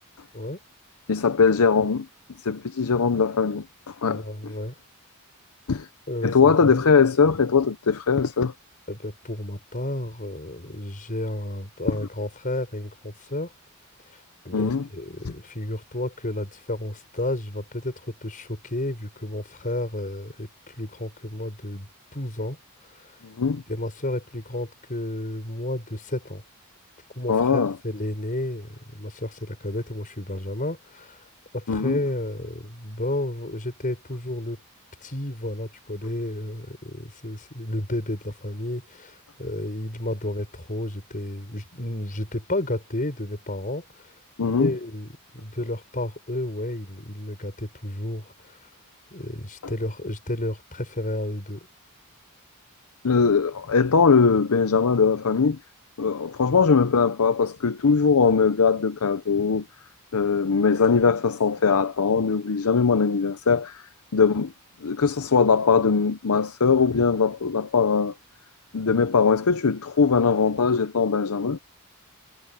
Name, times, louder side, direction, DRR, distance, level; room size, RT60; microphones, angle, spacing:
voice 1, 1.1-2.1 2.4-4.5 5.7-5.9 6.2-8.5 14.5-14.9 15.2-15.3 23.2-23.6 27.3-27.8 31.7-32.0 44.4-44.7 53.0-55.6 56.0-59.6 60.1-64.5 64.8-68.1 68.7-71.6, left 5 dB, 75° left, 0.7 m, -21 dB
voice 2, 4.1-4.8 6.1-6.8 8.9-13.5 14.1-14.2 14.4-22.6 23.0-23.1 23.7-26.4 27.1-31.2 31.5-34.6 35.0-43.8 44.4-45.1 45.3-48.6 49.1-51.7, left 1 dB, 40° left, 5.3 m, -31 dB
head